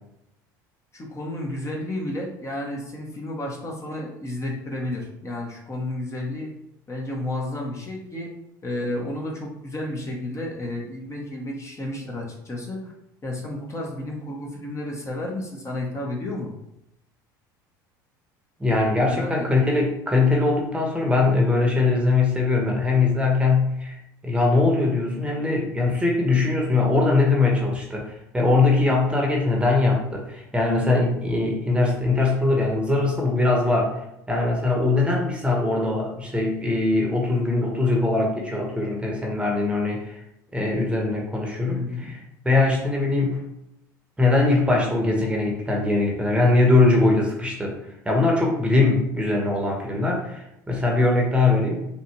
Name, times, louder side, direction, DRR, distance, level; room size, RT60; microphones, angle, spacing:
voice 1, 0.9-6.5 6.9-8.3 8.6-12.9 13.2-16.5 19.0-19.7 41.7-42.2, left 1 dB, 25° left, -2 dB, 1.2 m, -32 dB
voice 2, 18.6-33.9 34.3-40.2 40.5-42.2 42.4-43.4 44.2-47.7 48.0-51.8, left 3 dB, 10° right, -1 dB, 1.2 m, -21 dB
5.4 x 2.5 x 3.2 m, 0.82 s
hypercardioid pair, 75°, 11 cm